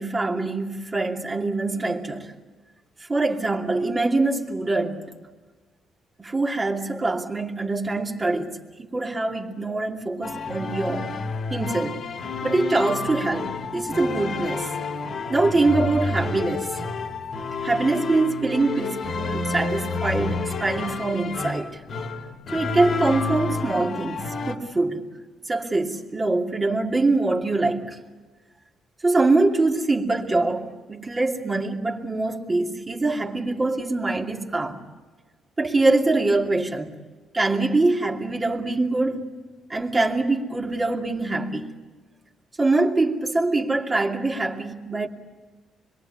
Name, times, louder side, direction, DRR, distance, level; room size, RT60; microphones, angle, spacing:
voice 1, 0.0-2.3 3.1-5.1 6.2-11.1 11.5-12.0 12.4-14.7 15.3-16.7 17.6-21.8 22.5-25.1 25.5-28.0 29.0-34.8 35.6-36.9 37.3-39.3 39.7-41.7 42.6-45.1, right 2 dB, 25° right, 2.8 m, -24 dB
sound 1, 10.2-24.5, left 4 dB, 55° left, 2.5 m, -30 dB
25.5 x 23.0 x 8.6 m
cardioid pair, 90°, 0 cm